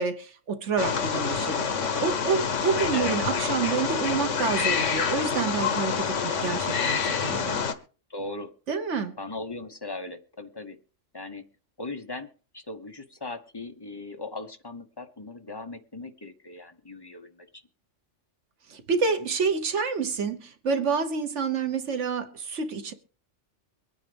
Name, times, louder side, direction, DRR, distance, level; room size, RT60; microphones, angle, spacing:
voice 1, 0.0-7.7 8.7-9.2 18.7-22.9, right 5 dB, 70° right, 1.4 m, -28 dB
Wild animals, 0.8-7.7, left 6 dB, 80° left, 1.4 m, -27 dB
voice 2, 8.1-8.5 9.2-10.8 11.1-11.5 11.8-12.3 12.5-17.6, left 2 dB, 20° left, 1.0 m, -38 dB
23.5 x 9.4 x 3.4 m
omnidirectional pair, 1.3 m